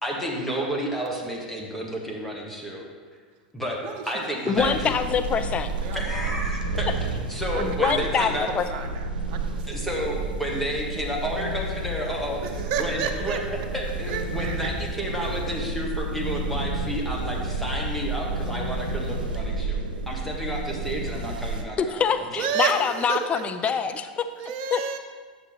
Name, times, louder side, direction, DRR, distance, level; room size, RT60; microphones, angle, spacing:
voice 1, 0.0-2.9 3.5-3.8 4.1-4.9 5.9-8.5 9.7-13.4 13.7-19.8 20.1-22.0 22.4-22.5, equal, 5° left, -3 dB, 1.7 m, -31 dB
voice 2, 3.8-4.7 5.3-5.4 5.8-6.0 7.5-9.8 12.4-13.4 14.1-14.7 22.4-23.4 24.4-25.0, right 6 dB, 55° right, 5 dB, 0.9 m, -31 dB
voice 3, 4.5-5.7 7.6-8.7 21.8-24.3 24.7-25.0, left 6 dB, 30° left, 9 dB, 0.5 m, -25 dB
sound 1, 4.5-21.6, right 2 dB, 85° right, 0.7 m, -30 dB
9.6 x 6.7 x 3.1 m, 1.5 s
hypercardioid pair, 90°, 5 cm